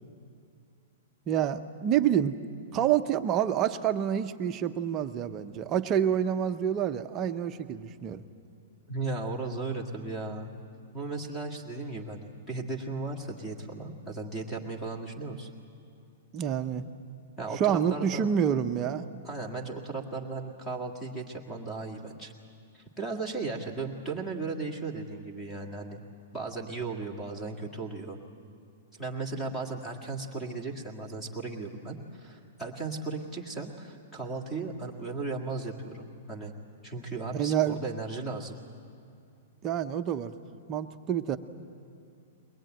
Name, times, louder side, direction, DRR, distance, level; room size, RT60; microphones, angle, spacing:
voice 1, 1.3-2.4 2.7-8.2 16.3-16.9 17.5-19.1 37.3-37.8 39.6-40.3 40.7-41.4, right 9 dB, 20° right, 8 dB, 0.6 m, -27 dB
voice 2, 8.9-10.5 10.9-15.5 17.4-18.3 19.2-22.3 22.7-26.0 26.3-28.2 29.0-36.5 36.8-38.6, right 3 dB, 5° left, 1 dB, 1.8 m, -36 dB
22.5 x 20.5 x 9.0 m, 2.5 s
hypercardioid pair, 175°, 0 cm